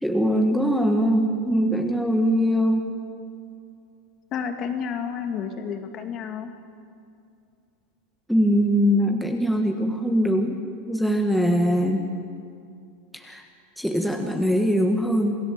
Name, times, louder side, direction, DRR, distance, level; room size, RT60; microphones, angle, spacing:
voice 1, 0.0-2.9 8.3-10.6 10.9-12.0 13.1-13.4 13.8-15.4, equal, ahead, 3 dB, 1.5 m, -22 dB
voice 2, 4.3-6.5, left 7 dB, 35° left, 6 dB, 2.2 m, -30 dB
27.5 x 18.0 x 7.6 m, 2.4 s
supercardioid pair, 150°, 0 cm